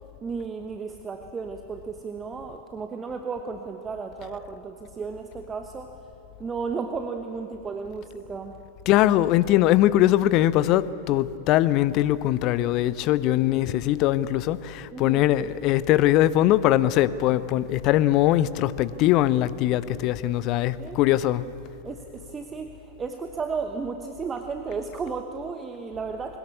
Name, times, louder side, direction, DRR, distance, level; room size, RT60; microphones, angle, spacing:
voice 1, 0.2-6.0 6.4-8.5 14.9-15.2 20.8-21.0 21.8-26.4, right 5 dB, 20° right, 1.1 m, -34 dB
voice 2, 8.9-21.5, left 14 dB, 40° left, 0.6 m, -21 dB
22.0 x 19.5 x 8.5 m
figure-of-eight pair, 90°, 0 cm